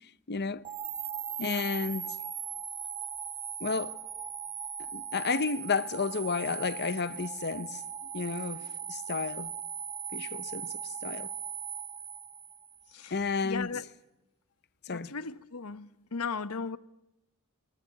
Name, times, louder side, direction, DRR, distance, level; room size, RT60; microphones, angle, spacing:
voice 1, 0.3-0.6 1.4-2.2 3.6-4.0 4.9-7.8 8.1-9.5 10.1-11.3 13.1-13.8 14.8-15.1, left 4 dB, 50° left, 0.9 m, -32 dB
sound 1, 0.6-12.8, right 8 dB, 25° right, 1.5 m, -39 dB
voice 2, 1.4-1.7 12.9-13.8 14.9-16.8, left 5 dB, 85° left, 1.0 m, -37 dB
22.5 x 21.0 x 9.8 m
head